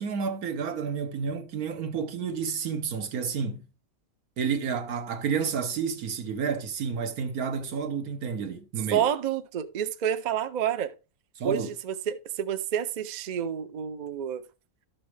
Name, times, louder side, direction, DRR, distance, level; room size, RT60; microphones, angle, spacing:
voice 1, 0.0-3.7 4.4-9.1 11.4-11.7, right 6 dB, 85° right, 1.5 m, -30 dB
voice 2, 8.9-10.9 11.4-14.4, right 9 dB, 65° right, 0.4 m, -29 dB
12.0 x 6.0 x 3.2 m
omnidirectional pair, 1.5 m